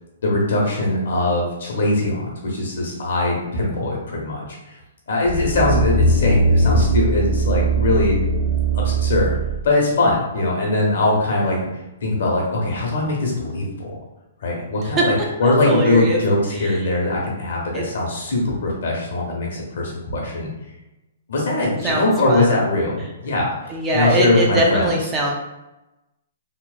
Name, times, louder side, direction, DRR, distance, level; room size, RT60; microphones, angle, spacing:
voice 1, 0.2-4.4 5.1-8.2 8.7-9.4 9.6-11.7 12.0-13.9 14.4-20.5 21.3-25.0, left 2 dB, 70° left, -2 dB, 0.9 m, -21 dB
sound 1, 5.3-9.6 10.1-10.2, right 2 dB, 60° right, 0.6 m, -19 dB
voice 2, 15.4-16.2 17.7-17.8 21.6-22.5 23.7-25.3, right 2 dB, 15° right, -2 dB, 0.3 m, -21 dB
3.0 x 2.1 x 2.4 m, 0.98 s
hypercardioid pair, 165°, 0 cm